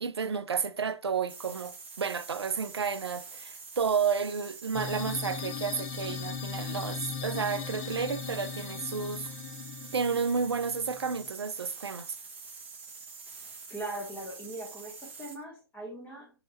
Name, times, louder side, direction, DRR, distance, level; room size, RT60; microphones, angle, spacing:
voice 1, 0.0-9.3 9.9-12.2, right 6 dB, 80° right, 0.5 m, -31 dB
sound 1, 1.3-15.4, right 4 dB, 10° right, 0.7 m, -46 dB
sound 2, 4.7-11.3, left 8 dB, 30° left, 0.3 m, -39 dB
voice 2, 13.7-16.3, right 1 dB, 10° left, 1.3 m, -40 dB
3.2 x 2.8 x 4.1 m
figure-of-eight pair, 130°, 13 cm